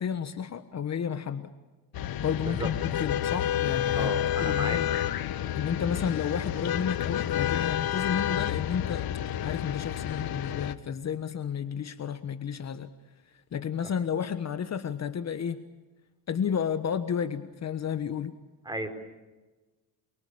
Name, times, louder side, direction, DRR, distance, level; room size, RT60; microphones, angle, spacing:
voice 1, 0.0-1.5 2.2-4.1 4.4-4.9 5.5-9.1 9.4-12.9 13.3-15.6 16.3-18.4, left 7 dB, 40° left, 10 dB, 1.4 m, -32 dB
sound 1, 1.9-10.7, left 11 dB, 60° left, 1.5 m, -30 dB
voice 2, 3.9-4.8 13.8-13.9 18.6-18.9, right 1 dB, 10° right, 6 dB, 4.9 m, -34 dB
28.5 x 23.5 x 8.8 m, 1.2 s
cardioid pair, 135°, 40 cm